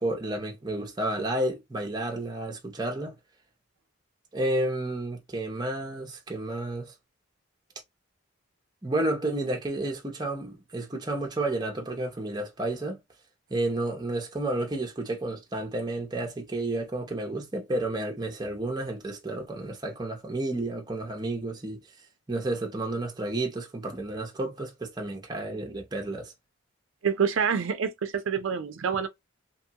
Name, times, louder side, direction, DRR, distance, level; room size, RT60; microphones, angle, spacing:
voice 1, 0.0-3.2 4.3-6.9 8.8-13.0 13.5-21.8 22.3-26.3, right 2 dB, 20° right, 0.6 m, -31 dB
voice 2, 27.0-29.1, right 6 dB, 75° right, 0.5 m, -27 dB
3.0 x 2.2 x 2.8 m
head